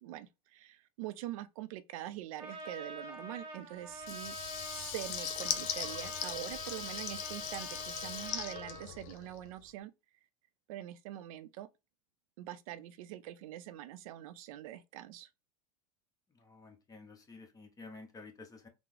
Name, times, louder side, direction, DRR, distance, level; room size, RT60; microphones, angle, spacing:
voice 1, 0.0-4.3 4.7-9.9 10.7-11.7 12.4-15.3, right 13 dB, 70° right, 0.4 m, -44 dB
Trumpet, 2.4-8.9, right 2 dB, 30° right, 1.0 m, -46 dB
Water tap faucet / Liquid, 4.0-9.5, left 9 dB, 65° left, 0.6 m, -39 dB
voice 2, 16.3-18.7, left 3 dB, 20° left, 0.8 m, -51 dB
3.5 x 2.0 x 3.1 m
hypercardioid pair, 110°, 19 cm